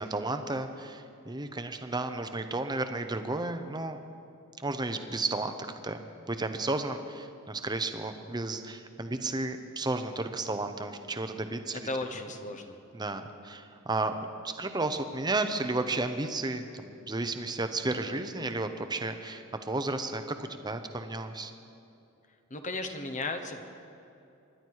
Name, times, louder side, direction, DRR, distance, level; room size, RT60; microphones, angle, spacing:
voice 1, 0.0-4.0 4.6-5.5 5.8-6.0 6.3-11.8 12.9-21.5, right 2 dB, 20° right, 8 dB, 0.8 m, -33 dB
voice 2, 11.8-12.7 22.5-23.6, left 2 dB, 35° left, 6 dB, 1.0 m, -35 dB
26.0 x 11.5 x 4.7 m, 2.8 s
head